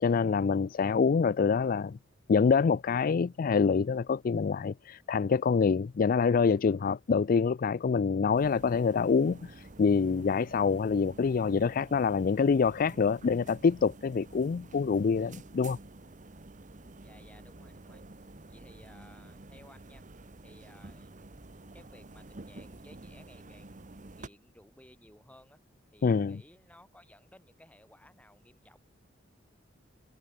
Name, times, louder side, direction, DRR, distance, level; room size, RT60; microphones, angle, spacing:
voice 1, 0.0-2.0 2.3-15.8 26.0-26.4, left 5 dB, 50° left, 0.4 m, -26 dB
sound 1, 8.3-24.3, right 2 dB, 45° right, 1.2 m, -50 dB
voice 2, 17.0-18.0 18.5-20.0 20.4-21.1 21.7-25.6 25.9-28.8, left 1 dB, 10° left, 5.6 m, -58 dB
head